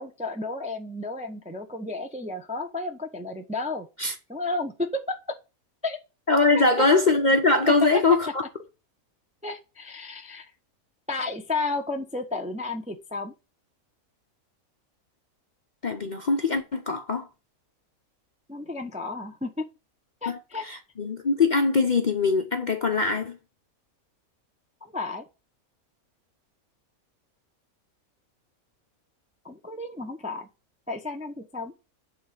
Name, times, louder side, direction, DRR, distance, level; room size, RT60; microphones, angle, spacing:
voice 1, 0.0-3.9 4.3-5.2 5.8-6.0 6.5-6.6 9.4-10.4 11.1-13.3 18.5-19.5 20.2-20.7 24.9-25.2 29.4-30.5 30.9-31.7, left 2 dB, 10° right, 0.5 m, -32 dB
voice 2, 6.3-8.4 15.8-17.3 20.3-23.4, left 3 dB, 45° left, 0.7 m, -22 dB
7.8 x 3.8 x 6.5 m
omnidirectional pair, 1.5 m